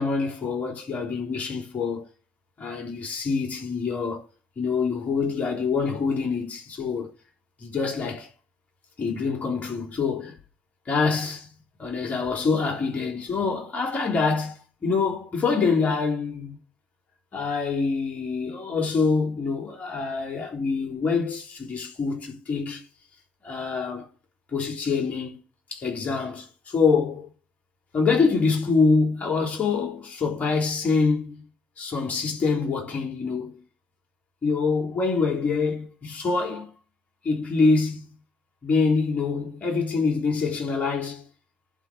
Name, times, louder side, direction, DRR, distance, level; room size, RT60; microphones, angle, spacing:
voice 1, 0.0-2.0 2.6-4.2 4.6-7.1 7.6-8.3 9.0-10.3 10.9-11.5 11.8-14.5 14.8-16.6 17.3-22.8 23.4-24.1 24.5-25.4 25.7-27.3 27.9-31.5 31.8-33.6 34.4-36.7 37.2-38.1 38.6-41.3, left 4 dB, 40° left, 3.8 m, -25 dB
11.5 x 4.3 x 6.8 m
figure-of-eight pair, 55°, 4 cm